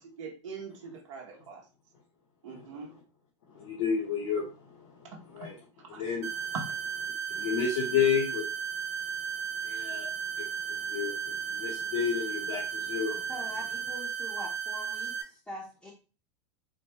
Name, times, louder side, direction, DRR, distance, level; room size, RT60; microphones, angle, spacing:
voice 1, 0.0-1.6 2.4-2.9 5.1-5.2 5.9-6.0, right 5 dB, 80° right, -1 dB, 1.0 m, -43 dB
voice 2, 3.5-5.6 5.9-6.5 7.3-8.4 9.6-10.1 10.3-13.2, left 7 dB, 70° left, -5 dB, 1.1 m, -31 dB
sound 1, 6.2-15.2, right 7 dB, 65° right, 0.5 m, -35 dB
voice 3, 7.1-7.6 13.3-15.9, left 1 dB, 5° left, -6 dB, 0.7 m, -44 dB
3.8 x 2.2 x 2.9 m, 0.35 s
supercardioid pair, 135°, 16 cm